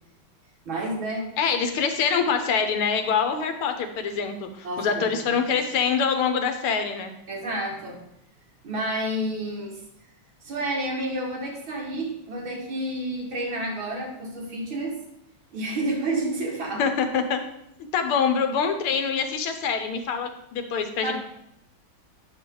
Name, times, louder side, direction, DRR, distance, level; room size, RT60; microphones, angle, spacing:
voice 1, 0.7-1.3 4.6-5.0 5.3-5.4 7.3-8.0 8.6-9.8 10.4-15.0 15.5-16.9 21.0-21.1, right 1 dB, 70° right, -2 dB, 2.7 m, -30 dB
voice 2, 1.4-7.1 16.8-17.4 17.9-21.1, left 6 dB, 90° left, 7 dB, 1.8 m, -25 dB
8.9 x 6.3 x 3.8 m, 0.80 s
omnidirectional pair, 2.3 m